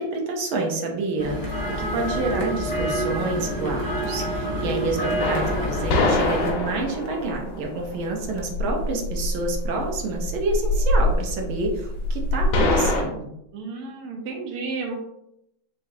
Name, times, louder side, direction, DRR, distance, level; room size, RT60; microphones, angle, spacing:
voice 1, 0.0-13.3, right 3 dB, 85° right, 1 dB, 1.6 m, -28 dB
sound 1, 1.2-6.5, equal, 15° left, 1.0 m, -27 dB
sound 2, 5.2-13.0, left 1 dB, 85° left, 1.6 m, -24 dB
voice 2, 13.5-14.9, right 4 dB, 60° right, 1 dB, 1.2 m, -32 dB
4.1 x 3.9 x 2.7 m, 0.80 s
omnidirectional pair, 2.2 m